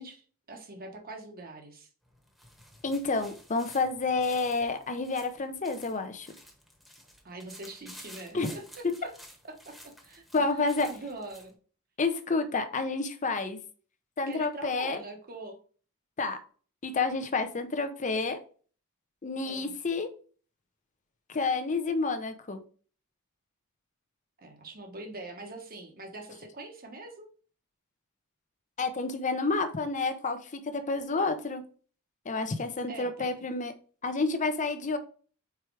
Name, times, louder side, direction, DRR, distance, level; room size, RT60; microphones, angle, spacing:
voice 1, 0.0-1.9 7.2-9.1 9.4-10.4 10.8-11.5 14.3-15.6 19.4-19.7 24.4-27.3 32.9-33.4, right 2 dB, 45° right, 3 dB, 1.3 m, -43 dB
sound 1, 2.0-11.5, equal, ahead, 1.2 m, -52 dB
voice 2, 2.8-6.3 8.3-8.5 10.3-10.9 12.0-13.6 14.2-15.0 16.2-16.4 16.8-18.4 19.2-20.1 21.3-22.6 28.8-31.6 32.2-33.7 34.0-35.0, left 3 dB, 35° left, 9 dB, 0.7 m, -29 dB
4.8 x 4.5 x 4.7 m, 0.41 s
head